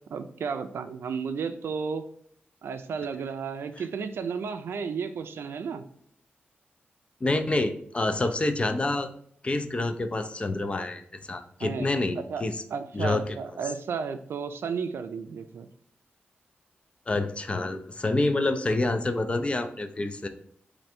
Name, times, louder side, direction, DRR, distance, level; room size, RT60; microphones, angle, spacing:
voice 1, 0.1-2.0 2.6-5.8 11.6-15.7, right 6 dB, 90° right, 9 dB, 0.3 m, -33 dB
voice 2, 7.2-9.1 9.4-12.6 12.9-13.2 17.1-20.3, left 2 dB, 30° left, 8 dB, 0.4 m, -27 dB
3.2 x 2.5 x 4.3 m, 0.64 s
wide cardioid pair, 90°, 4 cm